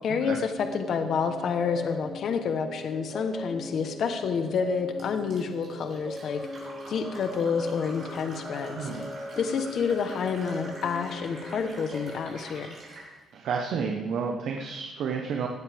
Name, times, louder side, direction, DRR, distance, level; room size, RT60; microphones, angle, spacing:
voice 1, 0.0-6.4 6.9-8.9 9.4-12.8, left 6 dB, 55° left, 6 dB, 1.1 m, -29 dB
sound 1, 0.6-12.3, left 1 dB, 10° left, 1.0 m, -40 dB
Fill (with liquid), 5.0-13.1, right 2 dB, 45° right, 4.8 m, -46 dB
voice 2, 8.8-9.1 13.3-15.5, right 6 dB, 65° right, 2 dB, 1.1 m, -30 dB
16.5 x 12.5 x 3.6 m, 1.3 s
cardioid pair, 150°, 0 cm